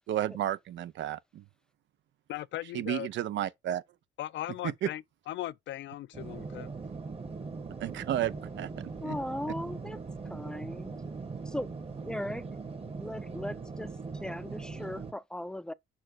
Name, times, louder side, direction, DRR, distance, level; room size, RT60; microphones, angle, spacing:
voice 1, 0.1-1.4 2.7-3.8 4.6-4.9 7.8-8.7 9.0-9.1, right 12 dB, 70° right, 0.6 m, -32 dB
voice 2, 2.3-3.1 4.2-6.7, left 14 dB, 70° left, 0.4 m, -38 dB
sound 1, 6.1-15.1, right 4 dB, 30° right, 1.5 m, -40 dB
voice 3, 9.0-10.0 10.3-11.0 11.5-12.4 13.0-15.7, left 1 dB, 5° left, 0.5 m, -38 dB
5.4 x 4.4 x 6.2 m
cardioid pair, 90°, 20 cm